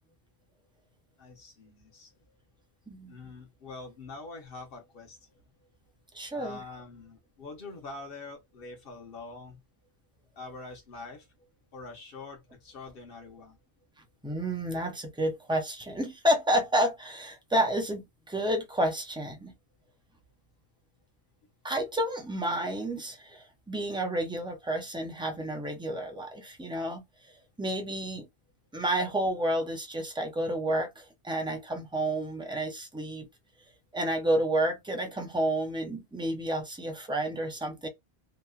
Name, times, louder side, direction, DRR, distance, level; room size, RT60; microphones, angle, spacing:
voice 1, 1.2-2.1 3.1-5.4 6.3-9.6 10.4-11.5 11.7-13.6, left 3 dB, 60° left, 1.1 m, -45 dB
voice 2, 6.1-6.6 14.2-19.5 21.6-27.0 27.6-28.3 28.7-33.3 33.9-37.9, right 1 dB, 10° right, 0.3 m, -30 dB
2.9 x 2.1 x 2.3 m
omnidirectional pair, 1.1 m